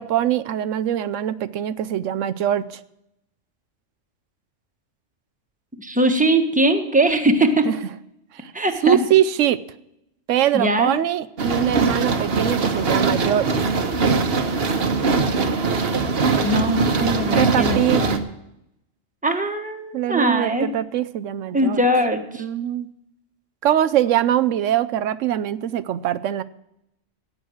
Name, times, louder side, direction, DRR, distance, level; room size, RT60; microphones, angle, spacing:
voice 1, 0.0-2.8 7.7-7.8 8.3-8.5 8.8-9.6 10.3-13.5 17.4-18.0 19.9-21.8 22.4-22.9 23.6-26.4, right 11 dB, 90° right, 13 dB, 1.0 m, -22 dB
voice 2, 5.8-7.7 8.5-9.0 10.5-10.9 16.4-18.2 19.2-20.7 21.5-22.4, right 1 dB, 5° right, 5 dB, 1.2 m, -21 dB
sound 1, 11.4-18.2, right 4 dB, 55° right, 1.3 m, -21 dB
15.5 x 9.1 x 6.3 m, 0.82 s
omnidirectional pair, 1.2 m